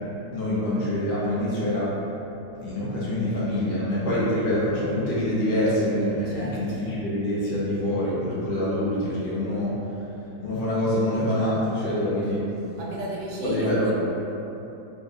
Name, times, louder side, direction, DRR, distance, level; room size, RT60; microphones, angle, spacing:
voice 1, 0.3-1.9 2.6-9.7 10.4-12.4 13.4-13.9, left 1 dB, 45° left, -8 dB, 0.8 m, -25 dB
voice 2, 6.2-6.6 12.7-13.9, right 1 dB, 90° right, -3 dB, 1.3 m, -34 dB
3.8 x 2.4 x 3.7 m, 3.0 s
omnidirectional pair, 1.9 m